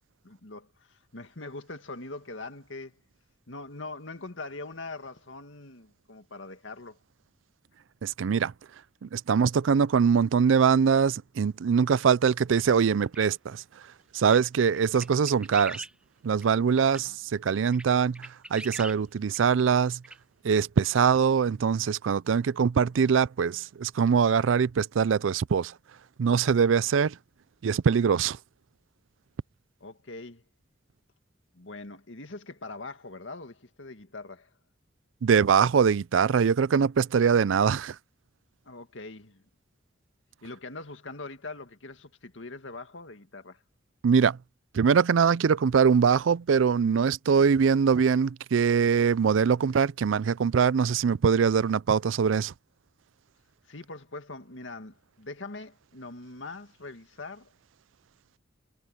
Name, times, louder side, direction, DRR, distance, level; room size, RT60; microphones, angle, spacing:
voice 1, 0.2-3.0 3.5-7.0 17.1-17.2 29.8-30.4 31.5-34.5 38.6-39.4 40.4-43.6 53.6-57.5, left 3 dB, 85° left, 2.1 m, -42 dB
voice 2, 8.0-8.5 9.0-13.6 14.1-15.8 16.2-20.0 20.4-25.7 26.2-27.2 27.6-28.4 35.2-38.0 44.0-44.4 44.7-52.5, right 6 dB, 90° right, 0.4 m, -23 dB
sound 1, 13.1-13.3 14.3-14.4 14.7-15.9 16.4-16.5 16.9-17.0 17.5-17.8 18.1-19.0 19.3-19.4 20.0-20.2, right 1 dB, 5° right, 1.2 m, -41 dB
head